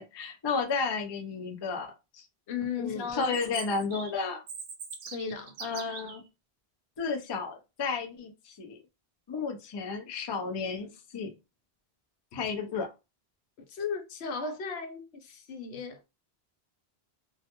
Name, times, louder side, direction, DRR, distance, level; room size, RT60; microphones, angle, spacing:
voice 1, 0.0-2.2 2.8-4.4 5.6-6.2 7.0-8.8 9.3-11.3 12.3-12.9, left 4 dB, 45° left, 0.3 m, -33 dB
voice 2, 2.5-3.4 5.1-5.6 12.3-12.5 13.7-16.0, left 5 dB, 80° left, 0.9 m, -36 dB
Chirp tweet, 3.2-6.2, right 5 dB, 75° right, 0.9 m, -42 dB
2.3 x 2.2 x 2.8 m
omnidirectional pair, 1.1 m